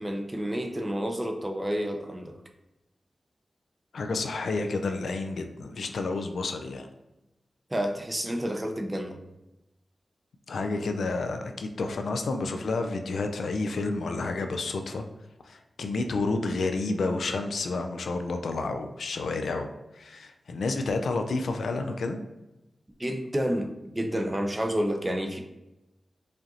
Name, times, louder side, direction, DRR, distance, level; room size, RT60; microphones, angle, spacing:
voice 1, 0.0-2.4 7.7-9.2 23.0-25.4, equal, 20° right, 4 dB, 0.6 m, -29 dB
voice 2, 3.9-6.9 10.5-15.0 15.5-19.7 19.9-22.2, left 3 dB, 90° left, 6 dB, 0.4 m, -30 dB
4.9 x 2.5 x 2.8 m, 0.96 s
cardioid pair, 60°, 0 cm